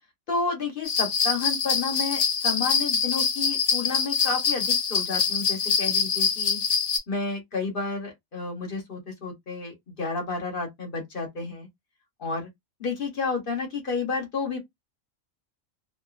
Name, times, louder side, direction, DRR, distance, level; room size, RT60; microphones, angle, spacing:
voice 1, 0.3-6.6 7.1-11.7 12.2-12.5 12.8-14.6, left 4 dB, 45° left, 1.1 m, -31 dB
sound 1, 0.8-7.0, left 6 dB, 60° left, 1.3 m, -25 dB
2.5 x 2.3 x 2.4 m
omnidirectional pair, 1.4 m